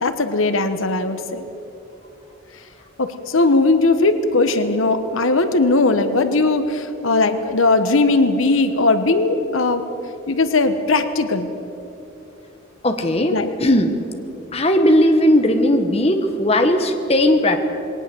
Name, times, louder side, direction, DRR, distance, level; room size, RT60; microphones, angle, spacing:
voice 1, 0.0-1.4 3.0-9.8 10.3-11.5 13.3-13.5, left 3 dB, 75° left, 10 dB, 1.2 m, -18 dB
voice 2, 12.8-13.3 13.6-14.0 14.5-17.6, left 1 dB, 30° left, 6 dB, 1.2 m, -17 dB
20.5 x 18.0 x 7.8 m, 2.9 s
head